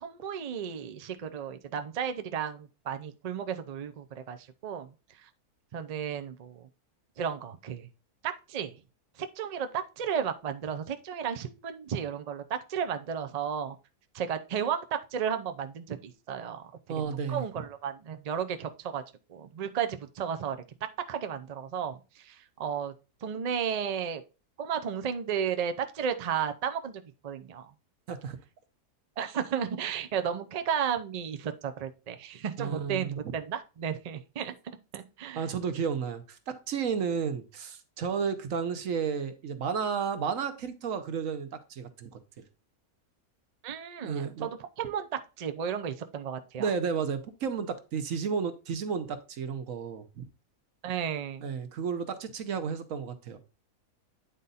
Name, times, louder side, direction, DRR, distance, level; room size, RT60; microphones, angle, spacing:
voice 1, 0.0-4.9 5.2-5.3 5.7-6.7 7.2-7.9 8.2-8.7 9.2-13.8 14.1-17.0 17.3-19.0 19.3-20.6 21.1-22.9 23.2-24.2 24.6-27.7 29.2-34.5 34.9-35.4 43.6-46.7 50.8-51.5, right 8 dB, 90° right, 0.3 m, -33 dB
voice 2, 16.9-17.4 28.1-28.4 32.6-33.2 35.3-36.4 36.7-42.2 44.0-44.5 46.6-50.3 51.4-53.4, right 6 dB, 65° right, 1.2 m, -32 dB
9.1 x 3.9 x 4.1 m
omnidirectional pair, 1.6 m